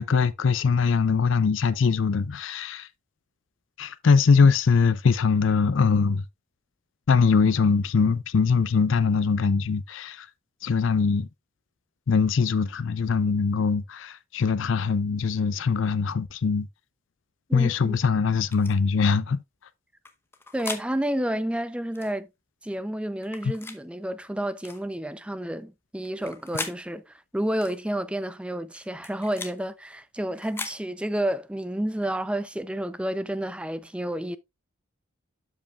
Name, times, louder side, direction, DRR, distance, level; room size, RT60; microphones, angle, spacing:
voice 1, 0.0-2.9 3.8-6.2 7.1-10.3 10.6-11.3 12.1-16.7 17.5-19.4, left 5 dB, 65° left, 0.5 m, -22 dB
voice 2, 17.5-18.0 20.5-22.3 22.6-34.4, right 1 dB, 5° right, 0.4 m, -30 dB
sound 1, 18.5-18.7 20.0-20.9 21.9-22.1 23.2-23.8 24.6-24.8 26.0-26.8 27.6-27.8 28.8-29.6 30.4-30.8, left 3 dB, 10° left, 0.8 m, -38 dB
12.0 x 5.3 x 2.3 m
head